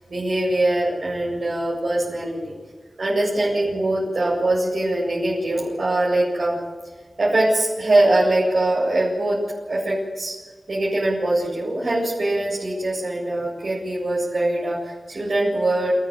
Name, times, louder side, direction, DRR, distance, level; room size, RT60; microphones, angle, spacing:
voice 1, 0.0-2.4 3.0-6.6 7.2-9.4 9.7-10.3 10.7-15.9, right 1 dB, 65° right, -6 dB, 7.8 m, -22 dB
28.5 x 14.0 x 9.5 m, 1.4 s
wide cardioid pair, 75°, 0 cm